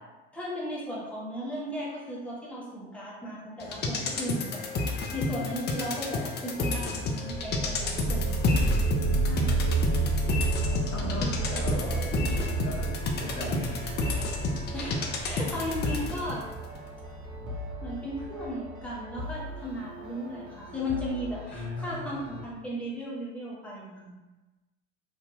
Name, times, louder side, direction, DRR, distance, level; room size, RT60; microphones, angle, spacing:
voice 1, 0.3-4.6 5.1-8.3 9.3-9.6 11.0-11.6 14.7-16.4 17.8-24.1, equal, 5° left, -7 dB, 0.8 m, -36 dB
sound 1, 3.6-16.4 16.8-16.9, left 3 dB, 30° left, 0.4 m, -31 dB
voice 2, 5.2-5.5 9.0-10.3 10.9-14.0 17.3-17.5 21.5-22.4, left 3 dB, 85° left, -4 dB, 0.8 m, -38 dB
sound 2, 7.3-18.7, right 3 dB, 25° right, 1.3 m, -31 dB
sound 3, 10.4-22.5, left 1 dB, 85° right, 0.7 m, -41 dB
2.6 x 2.3 x 2.6 m, 1.2 s
hypercardioid pair, 75°, 40 cm